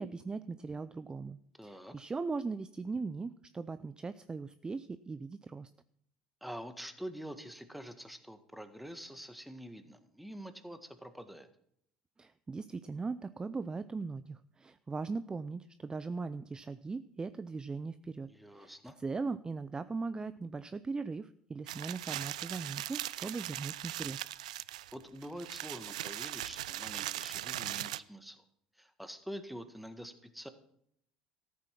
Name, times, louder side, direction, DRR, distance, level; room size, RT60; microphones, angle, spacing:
voice 1, 0.0-5.7 12.2-24.3, right 4 dB, 20° right, 14 dB, 0.5 m, -39 dB
voice 2, 1.6-1.9 6.4-11.5 18.2-19.0 24.9-28.4 28.8-30.5, equal, ahead, 9 dB, 1.7 m, -46 dB
sound 1, 21.7-28.0, right 14 dB, 75° right, 0.4 m, -39 dB
14.0 x 8.5 x 5.9 m, 0.70 s
hypercardioid pair, 65°, 4 cm